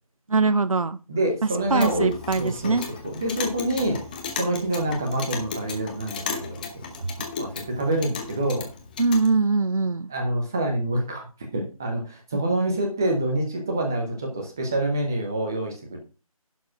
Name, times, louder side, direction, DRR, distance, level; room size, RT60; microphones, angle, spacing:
voice 1, 0.3-1.0 1.7-2.9 9.0-10.1, right 3 dB, 65° right, 13 dB, 0.8 m, -22 dB
voice 2, 1.1-2.1 2.4-4.0 4.3-6.9 7.4-8.7 10.1-11.3 11.5-16.0, right 1 dB, 5° right, 2 dB, 0.5 m, -26 dB
Clock, 1.6-9.3, left 5 dB, 15° left, 0.9 m, -35 dB
11.0 x 4.5 x 6.1 m, 0.33 s
figure-of-eight pair, 160°, 19 cm